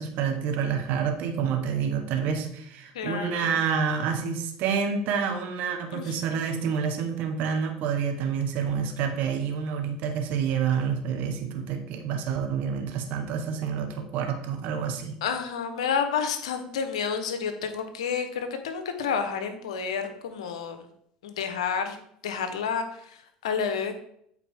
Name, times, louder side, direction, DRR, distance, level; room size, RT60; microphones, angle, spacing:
voice 1, 0.0-15.1, right 7 dB, 60° right, 5 dB, 1.1 m, -28 dB
voice 2, 2.9-3.6 5.9-6.7 15.2-20.9 21.2-22.0 22.2-24.0, left 6 dB, 85° left, 8 dB, 0.9 m, -30 dB
8.4 x 4.3 x 3.6 m, 0.69 s
hypercardioid pair, 80°, 3 cm